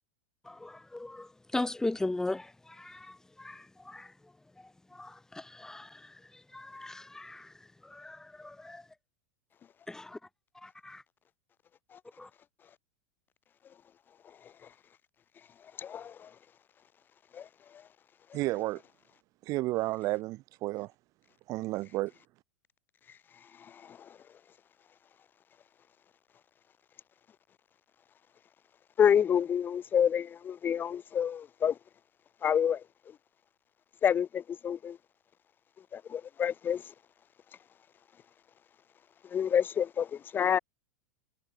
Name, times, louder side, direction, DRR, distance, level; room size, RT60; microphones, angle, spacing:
voice 1, 0.5-1.3 1.5-2.5 2.8-4.1 4.9-5.9 6.5-7.5 7.9-8.8 9.9-10.2 10.6-11.0 12.2-12.3, left 2 dB, 5° left, 4.6 m, -37 dB
voice 2, 15.8-16.1 17.3-17.4 29.0-31.7 32.4-32.8 34.0-35.0 35.9-36.8 39.3-40.6, left 8 dB, 25° left, 1.4 m, -28 dB
voice 3, 18.3-18.8 19.4-20.9 21.5-22.1, right 19 dB, 45° right, 5.2 m, -32 dB
hypercardioid pair, 120°, 8 cm